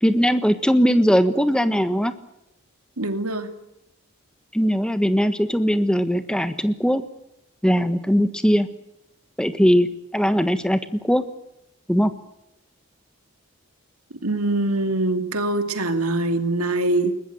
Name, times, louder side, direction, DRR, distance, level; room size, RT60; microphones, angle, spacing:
voice 1, 0.0-2.1 4.5-7.0 7.6-8.7 9.4-11.2 11.9-12.1, equal, 5° left, 10 dB, 1.4 m, -20 dB
voice 2, 3.0-3.5 14.2-17.1, right 2 dB, 90° right, 7 dB, 2.7 m, -23 dB
21.5 x 20.0 x 9.3 m, 0.84 s
head